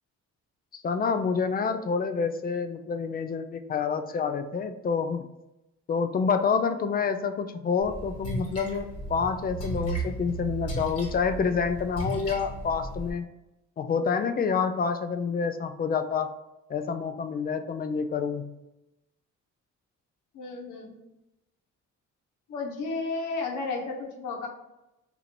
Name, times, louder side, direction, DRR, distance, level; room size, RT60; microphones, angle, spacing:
voice 1, 0.7-5.3 5.9-13.3 13.8-16.3 16.7-18.5, left 5 dB, 30° left, 9 dB, 0.4 m, -28 dB
Splash splatter, 7.8-13.1, right 2 dB, 55° left, 1.3 m, -35 dB
voice 2, 20.3-21.0 22.5-24.5, left 3 dB, 80° left, 0 dB, 1.0 m, -33 dB
2.8 x 2.6 x 4.3 m, 0.94 s
cardioid pair, 90°, 30 cm